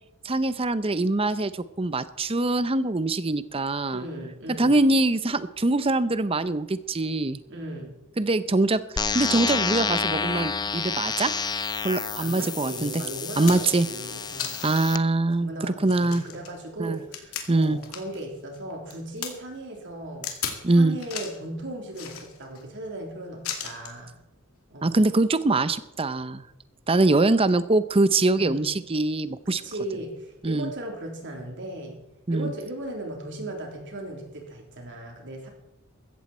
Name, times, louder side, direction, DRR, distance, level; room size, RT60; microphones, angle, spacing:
voice 1, 0.2-4.1 4.6-7.4 8.2-8.8 9.1-11.3 11.8-13.0 13.4-13.9 14.6-16.2 16.8-17.0 17.5-17.8 20.6-21.0 24.8-26.4 26.9-29.6 30.4-30.7 32.3-32.5, right 2 dB, 25° right, 14 dB, 0.7 m, -23 dB
voice 2, 3.9-4.8 7.5-7.9 12.2-14.6 15.4-20.3 20.7-24.1 24.7-24.9 28.3-28.7 29.5-32.0 32.3-35.5, right 1 dB, 60° right, 1 dB, 3.5 m, -37 dB
sound 1, 9.0-15.0, left 5 dB, 20° left, 0.6 m, -29 dB
sound 2, 12.7-12.8 13.2-13.8 14.4-14.9 15.3-15.4 15.8-18.2 18.5-19.3 20.2-20.6 21.0-21.4 21.9-22.6 23.4-24.0 25.1-25.2, left 8 dB, 80° left, 2.5 m, -35 dB
15.5 x 14.0 x 4.4 m, 0.90 s
head